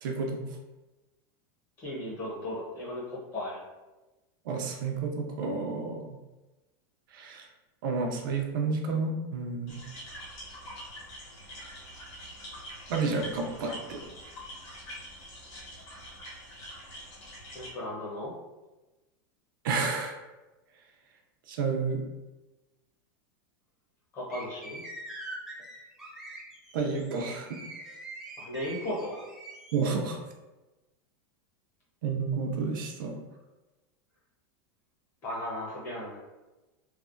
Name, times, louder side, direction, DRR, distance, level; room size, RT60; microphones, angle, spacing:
voice 1, 0.0-0.4 4.4-6.2 7.1-7.5 7.8-9.8 12.9-14.0 19.6-20.2 21.5-22.0 26.7-27.6 29.7-30.2 32.0-33.2, right 4 dB, 70° right, 2 dB, 0.5 m, -30 dB
voice 2, 1.8-3.6 13.6-13.8 17.5-18.3 24.1-24.8 28.4-29.3 35.2-36.2, left 1 dB, 20° left, -7 dB, 0.8 m, -36 dB
sound 1, 9.7-17.7, equal, 50° left, 0.9 m, -45 dB
sound 2, 24.3-29.9, right 2 dB, 5° right, 0.3 m, -44 dB
3.2 x 2.0 x 2.5 m, 1.1 s
supercardioid pair, 170°, 12 cm